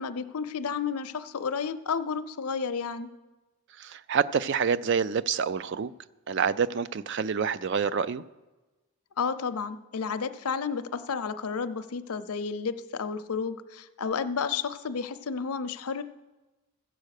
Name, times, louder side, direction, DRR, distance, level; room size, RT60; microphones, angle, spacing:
voice 1, 0.0-3.1 9.2-16.0, left 5 dB, 80° left, 0.6 m, -31 dB
voice 2, 3.8-5.9 6.3-8.2, right 6 dB, 50° right, 0.3 m, -27 dB
15.0 x 7.7 x 6.5 m
head